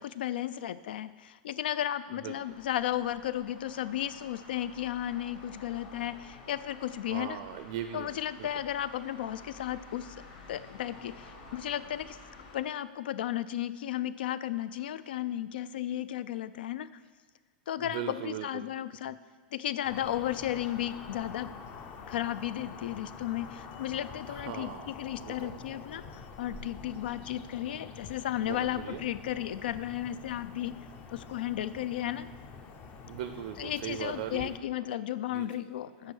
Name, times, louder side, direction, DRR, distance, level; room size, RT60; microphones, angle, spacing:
voice 1, 0.0-7.4 7.9-10.2 10.5-12.2 12.5-16.9 17.7-19.2 19.5-21.5 22.1-30.8 31.1-32.3 33.6-36.1, left 12 dB, 90° left, 15 dB, 0.4 m, -34 dB
sound 1, 2.3-12.6, left 3 dB, 70° left, 2.0 m, -51 dB
voice 2, 7.1-8.5 17.8-18.7 19.1-19.2 24.2-24.9 25.2-25.6 28.4-29.0 33.1-34.6 35.3-35.6, right 10 dB, 55° right, 9 dB, 0.4 m, -39 dB
sound 2, 19.8-34.6, left 5 dB, 30° left, 0.5 m, -46 dB
7.9 x 5.5 x 5.5 m, 1.5 s
supercardioid pair, 165°, 5 cm